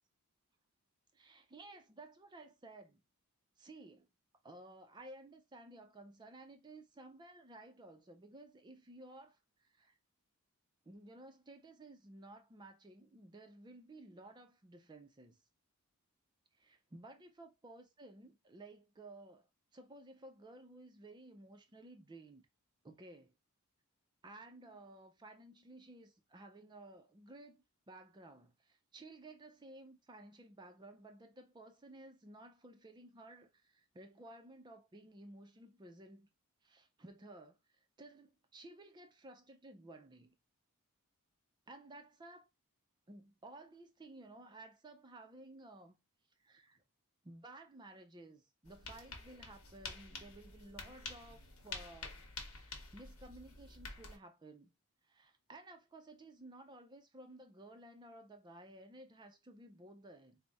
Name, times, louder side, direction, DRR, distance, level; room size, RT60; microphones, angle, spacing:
voice 1, 1.1-3.0 3.6-4.1 4.4-10.0 10.9-15.4 16.5-22.5 22.8-23.3 24.2-36.3 36.6-40.4 41.7-42.5 43.1-46.0 46.4-46.8 47.2-54.7 55.0-60.4, right 2 dB, 20° right, 0.4 m, -55 dB
sound 1, 48.6-54.2, left 3 dB, 65° left, 1.0 m, -49 dB
4.0 x 2.0 x 3.3 m
head